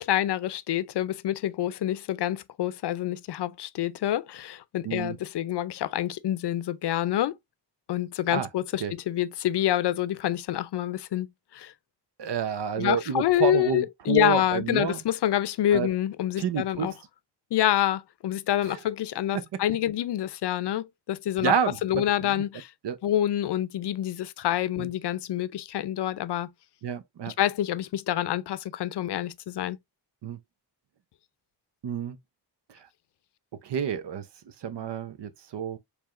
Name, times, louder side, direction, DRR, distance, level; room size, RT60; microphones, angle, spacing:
voice 1, 0.0-7.4 7.9-11.7 12.8-16.9 17.5-21.5 21.8-22.7 23.0-26.5 27.3-29.8, left 12 dB, 80° left, 0.5 m, -27 dB
voice 2, 4.8-5.2 8.3-8.5 8.8-8.9 12.2-15.0 15.7-15.9 16.4-16.9 18.7-18.8 19.3-19.4 21.4-22.3 22.8-23.0 24.8-24.9 26.8-27.3 30.2-30.4 31.8-32.2 33.6-34.2 34.6-35.8, right 8 dB, 85° right, 0.8 m, -29 dB
4.7 x 3.5 x 2.4 m
wide cardioid pair, 140°, 40 cm